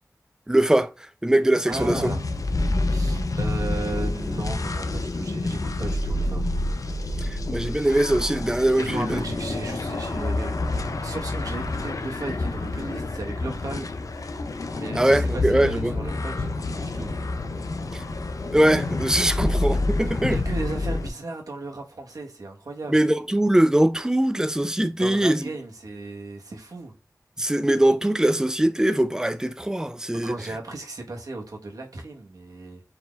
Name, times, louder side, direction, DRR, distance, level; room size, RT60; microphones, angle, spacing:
voice 1, 0.5-0.9 1.2-2.1 7.3-9.2 14.9-15.9 17.9-18.0 18.5-20.4 22.9-25.5 27.4-30.4, right 1 dB, 10° right, 0.5 m, -21 dB
voice 2, 1.6-2.2 2.8-7.1 8.8-14.3 14.7-17.1 20.3-23.0 25.0-26.9 30.2-32.8, right 2 dB, 90° right, 1.3 m, -36 dB
sound 1, 1.7-21.1, left 2 dB, 70° left, 0.6 m, -28 dB
4.6 x 3.7 x 2.4 m
wide cardioid pair, 80°, 6 cm